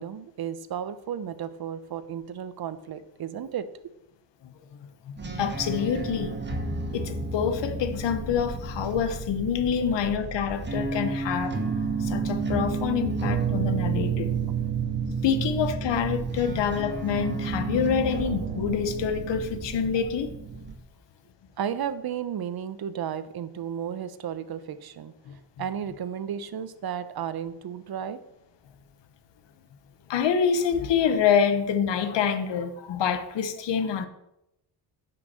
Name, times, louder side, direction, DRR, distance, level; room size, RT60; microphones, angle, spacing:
voice 1, 0.0-3.7 14.5-14.6 21.6-25.1 25.6-28.2, right 8 dB, 55° right, 13 dB, 1.0 m, -33 dB
sound 1, 5.2-20.8, right 4 dB, 25° right, 1.9 m, -31 dB
voice 2, 5.4-6.6 6.9-11.6 12.0-14.3 15.2-20.3 30.1-34.1, left 7 dB, 80° left, 10 dB, 1.3 m, -26 dB
9.7 x 6.0 x 7.6 m, 0.83 s
cardioid pair, 105°, 43 cm